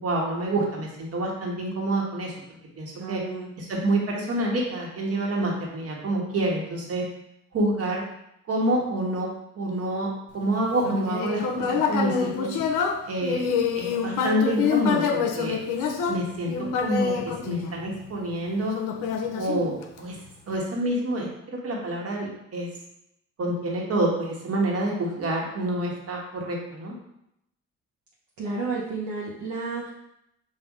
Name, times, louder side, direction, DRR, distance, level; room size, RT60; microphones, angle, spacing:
voice 1, 0.0-2.3 2.8-3.2 3.6-7.1 7.5-8.0 8.5-9.3 9.5-10.1 10.3-12.5 13.1-13.5 13.7-15.6 16.1-16.5 16.8-18.7 19.4-20.2 20.5-22.7 23.4-27.0, right 1 dB, 50° right, -1 dB, 1.3 m, -27 dB
voice 2, 3.0-3.5 28.4-29.9, right 3 dB, 70° right, -5 dB, 0.9 m, -31 dB
Human voice, 10.8-18.2 18.7-20.2, left 6 dB, 90° left, 0.6 m, -26 dB
5.5 x 2.6 x 3.6 m, 0.79 s
cardioid pair, 90°, 30 cm